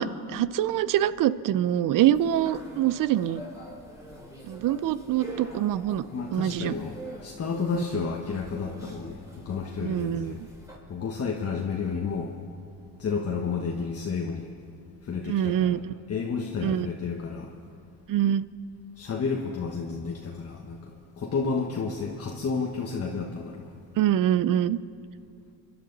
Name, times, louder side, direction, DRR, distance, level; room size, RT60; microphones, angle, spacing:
voice 1, 0.0-3.4 4.4-6.0 6.3-6.7 9.8-10.3 15.3-16.0 16.6-16.9 18.1-18.5 24.0-24.8, right 11 dB, 55° right, 18 dB, 0.6 m, -25 dB
sound 1, 2.1-10.8, right 1 dB, 10° right, 4.4 m, -45 dB
voice 2, 6.1-7.0 7.2-10.4 10.9-12.3 13.0-14.5 15.0-15.8 16.1-17.5 19.0-20.9 21.2-23.7, left 5 dB, 40° left, 0 dB, 1.3 m, -31 dB
28.5 x 11.0 x 4.0 m, 2.6 s
supercardioid pair, 85°, 39 cm